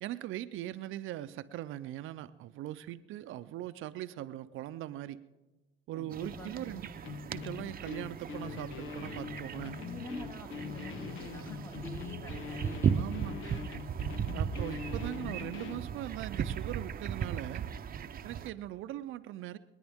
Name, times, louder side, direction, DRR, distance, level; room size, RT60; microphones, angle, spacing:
voice 1, 0.0-5.2 5.9-6.9 7.3-9.7 12.9-13.6 14.3-17.6 18.2-19.6, right 13 dB, 85° right, 12 dB, 0.5 m, -40 dB
voice 2, 5.9-6.9 9.7-13.4, left 1 dB, 15° left, 3 dB, 2.4 m, -46 dB
sound 1, 6.1-18.5, right 7 dB, 50° right, 0.7 m, -37 dB
sound 2, 7.0-15.9, left 6 dB, 80° left, 0.9 m, -43 dB
29.0 x 9.9 x 3.5 m, 1.1 s
cardioid pair, 90°, 20 cm